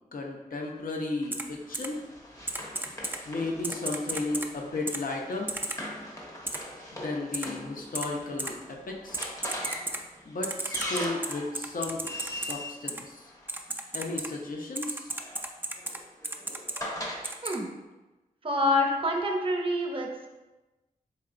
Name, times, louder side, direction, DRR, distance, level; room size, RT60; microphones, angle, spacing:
voice 1, 0.1-2.0 3.3-5.5 6.9-9.2 10.2-13.2 13.9-15.1, left 2 dB, 65° left, 0 dB, 0.6 m, -34 dB
Run, 1.2-13.9 14.9-17.3, left 1 dB, 20° left, 0.7 m, -41 dB
Typing, 1.3-1.4 1.7-1.9 2.5-3.2 3.6-4.5 4.9-5.0 5.5-5.8 6.5-6.6 7.3-7.5 7.9-8.1 8.4-8.5 9.1-10.0 10.4-12.5 12.9-13.0 13.5-14.3 14.8-16.0 16.2-16.8 17.2-17.6, right 2 dB, 15° right, 0.3 m, -33 dB
voice 2, 18.4-20.3, left 1 dB, 35° right, 1 dB, 0.7 m, -27 dB
4.4 x 2.8 x 2.5 m, 1.1 s
wide cardioid pair, 65°, 16 cm